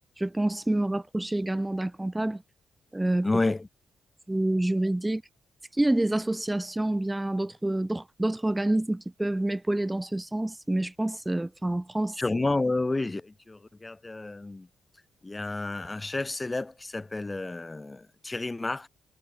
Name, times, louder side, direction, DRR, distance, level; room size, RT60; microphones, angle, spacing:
voice 1, 0.2-2.4 2.9-3.3 4.3-5.2 5.8-12.2, right 1 dB, 15° right, 8.0 m, -27 dB
voice 2, 3.2-3.7 12.2-14.7 15.2-18.9, left 2 dB, 25° left, 6.0 m, -30 dB
hypercardioid pair, 40°, 0 cm